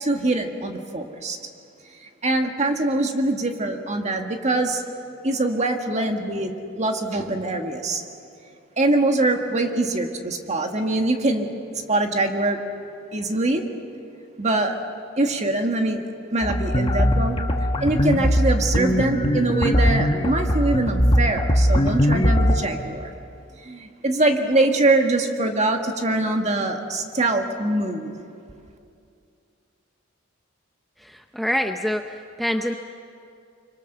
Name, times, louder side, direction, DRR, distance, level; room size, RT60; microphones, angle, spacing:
voice 1, 0.0-1.4 2.0-4.8 5.2-8.0 8.8-12.6 13.1-13.6 14.4-14.8 15.2-16.0 16.3-23.1 23.6-28.2, right 2 dB, 35° right, 4 dB, 1.7 m, -23 dB
sound 1, 16.4-22.6, equal, 30° left, 1.7 m, -20 dB
voice 2, 31.0-32.7, equal, ahead, 4 dB, 0.6 m, -26 dB
26.0 x 24.5 x 6.8 m, 2.5 s
head